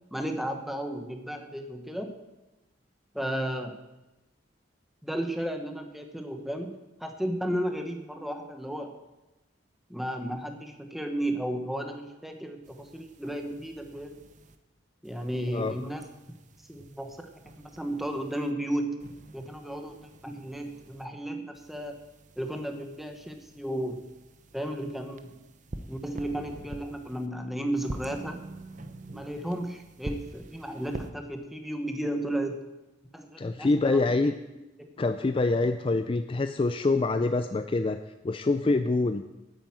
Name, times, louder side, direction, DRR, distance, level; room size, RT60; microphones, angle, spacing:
voice 1, 0.1-2.1 3.1-3.8 5.0-6.7 7.0-8.9 9.9-14.2 15.0-16.0 16.7-17.2 17.6-19.0 19.3-22.0 22.4-24.0 24.5-25.4 25.9-28.4 29.1-32.6 33.1-34.0 34.8-34.9, right 1 dB, ahead, 5 dB, 1.1 m, -34 dB
sound 1, 12.6-14.6 15.0-18.5 19.0-21.1 21.5-27.3 27.8-31.1, right 1 dB, 40° right, 0.8 m, -46 dB
voice 2, 33.4-34.3 35.0-38.0 38.2-39.2, left 3 dB, 30° left, 9 dB, 0.4 m, -25 dB
9.1 x 9.1 x 7.6 m, 1.0 s
head